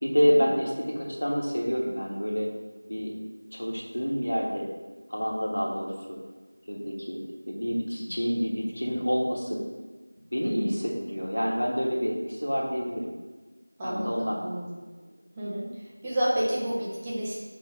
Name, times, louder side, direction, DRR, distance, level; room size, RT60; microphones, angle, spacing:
voice 1, 0.0-2.5 2.9-3.1 3.5-4.6 5.1-6.2 6.6-9.6 10.3-13.1 13.8-14.4, equal, 90° left, -3 dB, 1.6 m, -28 dB
voice 2, 13.8-14.8 15.4-15.7 16.0-17.4, equal, 10° right, -8 dB, 0.6 m, -30 dB
5.9 x 3.4 x 5.0 m, 1.3 s
figure-of-eight pair, 175°, 0 cm